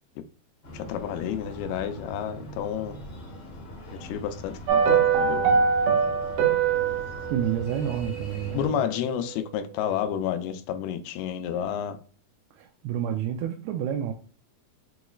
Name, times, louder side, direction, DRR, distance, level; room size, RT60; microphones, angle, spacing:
Breathing, 0.6-8.7, equal, 65° left, 1.0 m, -41 dB
voice 1, 0.7-3.0 3.9-5.4 8.5-12.0, left 9 dB, 90° left, 2.5 m, -30 dB
sound 1, 4.7-9.0 9.2-9.3, right 6 dB, 70° right, 2.0 m, -24 dB
voice 2, 7.3-8.8 12.5-14.1, right 9 dB, 90° right, 2.5 m, -29 dB
6.6 x 3.0 x 2.3 m
omnidirectional pair, 4.3 m